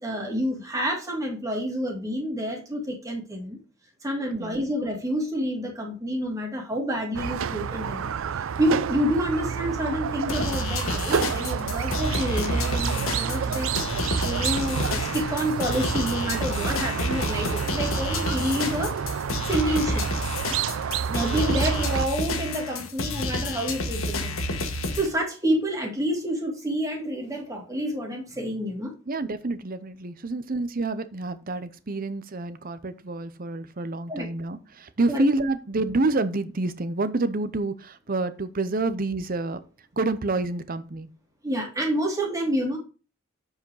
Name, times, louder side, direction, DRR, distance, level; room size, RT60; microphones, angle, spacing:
voice 1, 0.0-3.6 4.0-8.1 8.6-19.0 19.4-20.0 21.1-24.4 24.7-28.9 34.1-34.3 35.1-35.2 41.4-42.8, equal, 15° right, 0 dB, 2.3 m, -28 dB
voice 2, 4.3-4.6 29.1-39.6 40.0-41.1, right 2 dB, 40° right, 13 dB, 0.7 m, -28 dB
Squeak, 7.1-22.1, right 7 dB, 70° right, 0.4 m, -29 dB
sound 1, 10.3-25.1, left 2 dB, 70° left, 1.5 m, -30 dB
8.0 x 4.9 x 4.8 m, 0.34 s
head